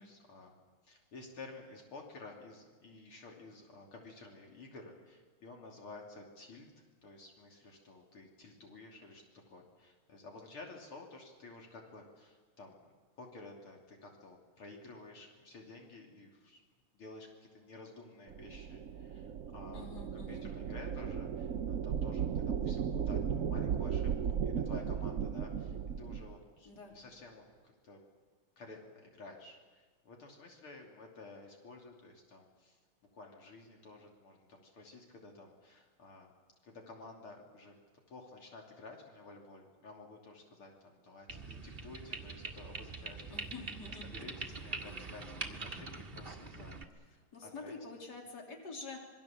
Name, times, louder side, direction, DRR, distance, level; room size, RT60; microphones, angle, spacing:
voice 1, 0.0-9.2 9.5-16.6 16.9-28.0 28.6-32.8 33.1-36.3 36.6-37.7 38.1-43.7 44.0-46.8 47.4-47.8, left 3 dB, 80° left, 1 dB, 3.9 m, -52 dB
sound 1, 18.3-26.3, right 7 dB, 55° right, 0.9 m, -36 dB
voice 2, 19.7-20.4 26.7-27.0 43.3-44.1 44.8-45.1 47.3-49.0, left 3 dB, 50° left, 1 dB, 3.7 m, -47 dB
sound 2, 41.3-46.8, right 3 dB, 25° right, 1.7 m, -44 dB
26.5 x 22.5 x 7.3 m, 1.4 s
omnidirectional pair, 2.4 m